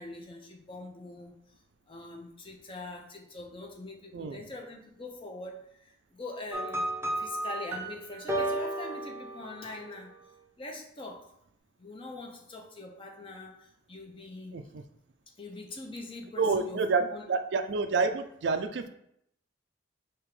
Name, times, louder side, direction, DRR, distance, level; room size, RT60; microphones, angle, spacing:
voice 1, 0.0-1.4 1.9-6.9 7.2-10.1 10.6-11.3 11.8-14.6 15.3-16.8 17.1-17.2, left 2 dB, 25° left, 2 dB, 0.6 m, -43 dB
sound 1, 6.5-9.9, right 1 dB, 15° right, 0.6 m, -33 dB
voice 2, 16.4-18.9, right 4 dB, 60° right, 8 dB, 0.4 m, -28 dB
3.5 x 2.9 x 4.8 m, 0.73 s
head